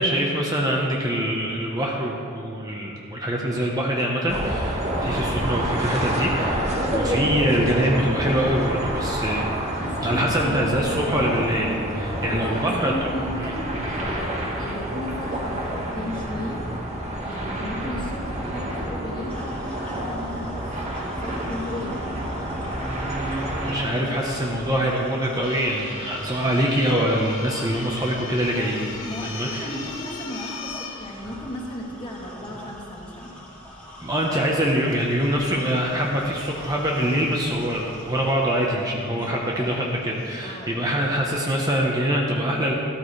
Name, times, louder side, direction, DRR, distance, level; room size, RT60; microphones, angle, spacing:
voice 1, 0.0-9.5 10.0-12.9 13.4-13.5 23.3-28.9 29.2-29.7 34.0-42.7, equal, 20° right, -2 dB, 1.0 m, -24 dB
sound 1, 4.3-23.9, right 1 dB, 35° right, 1.6 m, -28 dB
voice 2, 5.0-5.3 9.7-11.5 12.0-16.6 17.2-22.1 28.5-33.4 39.0-39.9 40.4-40.9, left 1 dB, 25° left, -3 dB, 2.0 m, -35 dB
sound 2, 19.3-38.3, left 1 dB, 5° left, 2.0 m, -44 dB
sound 3, 25.4-42.1, left 4 dB, 85° left, 2.4 m, -42 dB
14.0 x 13.0 x 3.3 m, 2.5 s
head